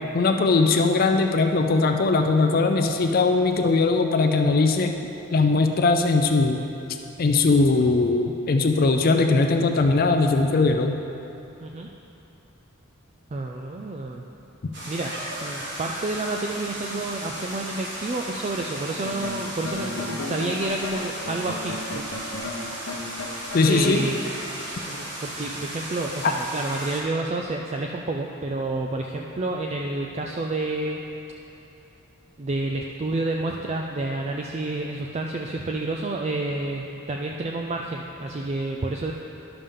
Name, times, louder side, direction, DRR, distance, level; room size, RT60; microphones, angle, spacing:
voice 1, 0.1-4.9 5.3-6.6 7.2-11.0 23.5-24.0, left 3 dB, 45° left, 5 dB, 0.4 m, -20 dB
voice 2, 13.3-14.2 14.9-15.1 15.4-22.1 23.7-24.2 24.9-31.0 32.4-39.1, right 2 dB, 30° right, 1 dB, 0.3 m, -29 dB
sound 1, 14.7-27.0, right 1 dB, 55° right, 1.6 m, -35 dB
sound 2, 19.0-24.0, left 2 dB, 75° left, 0.9 m, -34 dB
11.0 x 6.8 x 3.7 m, 2.9 s
head